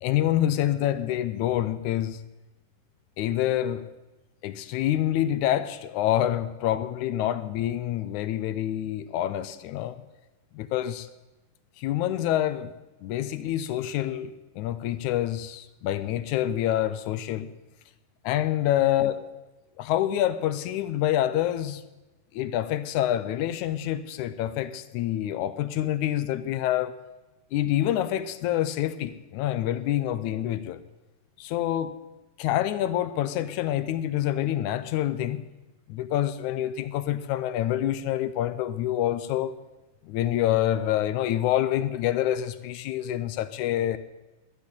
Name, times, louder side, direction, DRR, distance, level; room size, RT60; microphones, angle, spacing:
voice 1, 0.0-2.2 3.2-3.8 4.4-10.0 10.6-11.1 11.8-12.7 13.0-14.3 14.6-17.5 18.3-19.2 19.8-21.8 22.4-27.0 27.5-30.8 31.4-31.9 32.4-35.4 35.9-39.5 40.1-44.0, left 12 dB, 75° left, 1.9 m, -27 dB
11.0 x 10.5 x 9.8 m
omnidirectional pair, 3.8 m